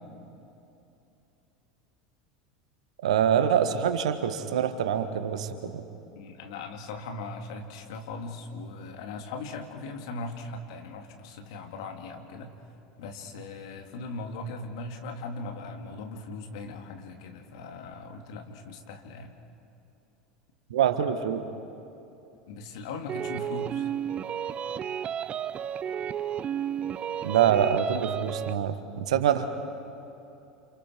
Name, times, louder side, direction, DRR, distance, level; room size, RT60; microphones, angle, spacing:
voice 1, 3.0-5.8 20.7-21.4 27.2-29.4, right 9 dB, 70° right, 8 dB, 1.6 m, -25 dB
voice 2, 6.1-12.5 13.0-19.4 22.5-23.9, left 3 dB, 65° left, 4 dB, 2.5 m, -39 dB
sound 1, 23.1-28.6, right 9 dB, 35° right, 0.6 m, -32 dB
29.5 x 28.5 x 4.7 m, 2.8 s
figure-of-eight pair, 80°, 3 cm